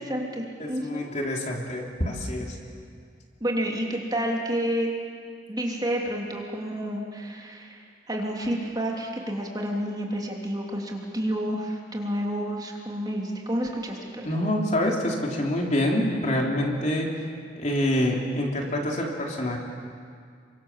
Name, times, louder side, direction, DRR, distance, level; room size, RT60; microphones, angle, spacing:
voice 1, 0.0-1.1 3.4-4.9 5.5-14.2, equal, 20° right, -1 dB, 3.2 m, -29 dB
voice 2, 0.6-2.5 14.2-17.1 17.6-19.6, left 1 dB, 40° left, 0 dB, 3.4 m, -26 dB
29.5 x 24.5 x 7.5 m, 2.2 s
head